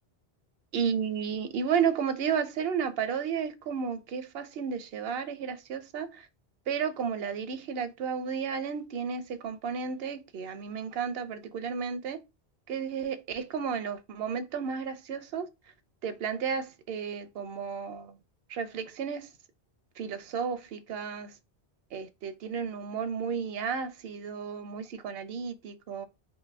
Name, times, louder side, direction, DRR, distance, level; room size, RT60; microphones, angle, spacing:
voice 1, 0.7-6.3 6.7-12.2 12.7-15.5 16.0-18.2 18.5-19.3 20.0-21.3 21.9-26.1, right 6 dB, 70° right, 0.8 m, -33 dB
3.1 x 2.7 x 3.3 m
omnidirectional pair, 1.1 m